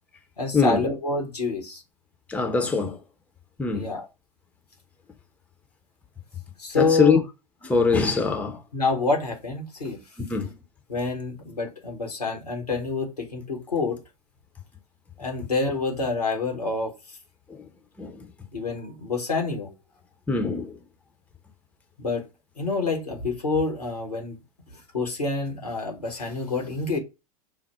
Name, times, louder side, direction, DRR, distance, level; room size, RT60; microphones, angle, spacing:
voice 1, 0.4-1.8 3.7-4.1 6.6-7.2 8.7-10.0 10.9-14.0 15.2-17.2 18.5-19.7 22.0-22.3 22.6-24.4 24.7-27.0, left 3 dB, 85° left, 1.3 m, -27 dB
voice 2, 2.3-3.0 3.6-3.9 6.8-7.2 7.6-8.6 10.3-10.5 18.0-18.2 20.3-20.7, left 4 dB, 5° left, 0.7 m, -22 dB
5.5 x 2.1 x 4.4 m
figure-of-eight pair, 90°, 19 cm